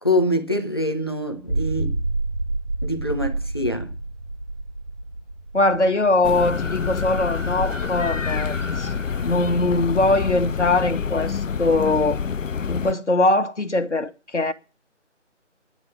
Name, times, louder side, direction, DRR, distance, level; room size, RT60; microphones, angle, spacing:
voice 1, 0.0-2.0 2.8-3.9, left 1 dB, 20° left, 0.9 m, -24 dB
sound 1, 1.4-7.8, right 2 dB, 55° right, 1.6 m, -29 dB
voice 2, 5.5-8.9 9.2-12.2 12.7-14.5, left 2 dB, 70° left, 1.6 m, -21 dB
sound 2, 6.2-12.9, left 6 dB, 90° left, 0.6 m, -27 dB
sound 3, 6.3-10.1, equal, 10° right, 1.6 m, -38 dB
10.5 x 9.7 x 8.4 m
figure-of-eight pair, 165°, 37 cm